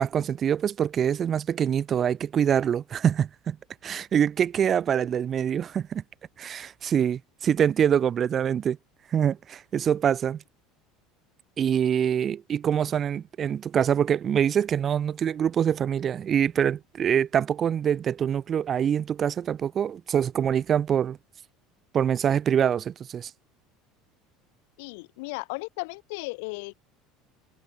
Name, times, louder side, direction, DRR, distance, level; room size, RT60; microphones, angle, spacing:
voice 1, 0.0-3.6 3.8-6.0 6.4-8.8 9.1-10.4 11.6-21.2 21.9-23.3, right 8 dB, 40° right, 0.7 m, -25 dB
voice 2, 24.8-26.9, left 28 dB, 75° left, 1.2 m, -36 dB
hypercardioid pair, 85°, 0 cm